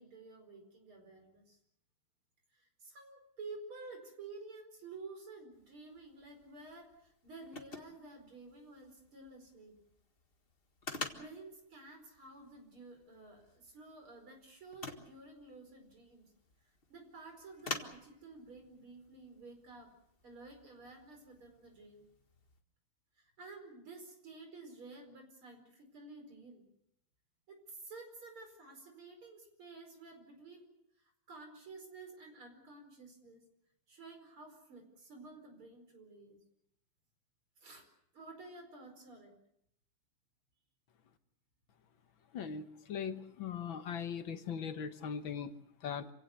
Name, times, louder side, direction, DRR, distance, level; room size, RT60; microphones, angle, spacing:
voice 1, 0.0-1.6 2.5-9.8 11.1-16.3 16.9-19.9 20.2-22.1 23.2-26.7 27.5-33.4 33.9-36.4 37.6-37.9 38.1-39.3, right 3 dB, 85° right, 5 dB, 5.7 m, -52 dB
sound 1, 5.5-22.6, left 3 dB, 30° left, 1.7 m, -50 dB
voice 2, 42.3-46.1, left 7 dB, 70° left, 9 dB, 2.0 m, -40 dB
27.5 x 17.0 x 8.0 m, 0.75 s
omnidirectional pair, 2.3 m